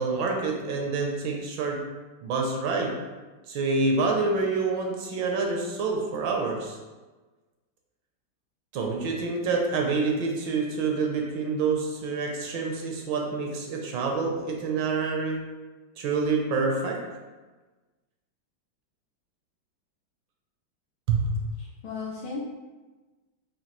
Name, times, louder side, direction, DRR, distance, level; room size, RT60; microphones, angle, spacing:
voice 1, 0.0-1.8 2.2-2.9 3.5-6.8 8.7-15.4 16.0-17.0 21.1-21.3, right 4 dB, 75° right, 1 dB, 1.2 m, -27 dB
voice 2, 21.6-22.4, left 4 dB, 75° left, -4 dB, 1.0 m, -36 dB
5.0 x 2.6 x 2.9 m, 1.3 s
omnidirectional pair, 2.2 m